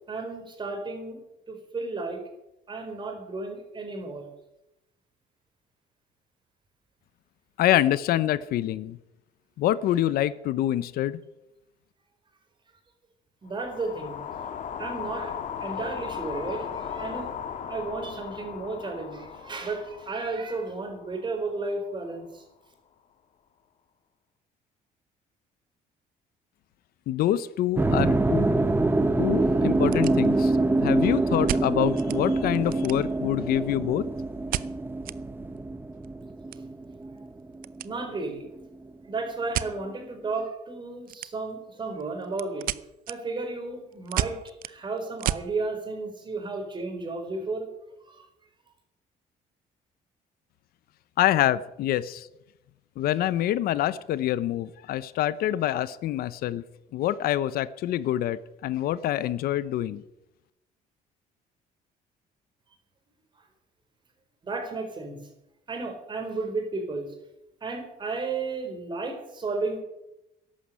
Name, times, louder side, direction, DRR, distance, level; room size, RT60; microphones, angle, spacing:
voice 1, 0.1-1.2 1.5-2.2 2.7-4.3 13.4-14.4 14.8-17.3 17.7-22.4 37.8-38.5 39.1-42.7 43.1-44.3 44.6-47.7 48.1-48.2 64.4-65.2 65.7-67.1 67.6-69.8, right 3 dB, 30° right, 4 dB, 4.6 m, -33 dB
voice 2, 7.6-9.0 9.6-11.2 27.1-28.4 29.2-30.5 30.8-34.1 51.2-52.3 53.0-56.6 56.9-60.0, left 13 dB, 75° left, 16 dB, 0.8 m, -26 dB
sound 1, 13.5-21.7, left 8 dB, 55° left, 1.8 m, -37 dB
sound 2, 27.4-27.6 28.0-28.1 28.7-28.8 29.0-29.1 29.6-30.6 31.5-32.2 32.5-33.3 34.5-35.2 35.5-35.6 35.9-37.9 38.2-38.5 39.5-39.7 41.1-41.6 42.0-45.5, right 13 dB, 65° right, 0.7 m, -33 dB
sound 3, 27.8-37.9, right 2 dB, 15° right, 1.1 m, -25 dB
14.0 x 11.5 x 8.8 m, 0.88 s
cardioid pair, 130°, 16 cm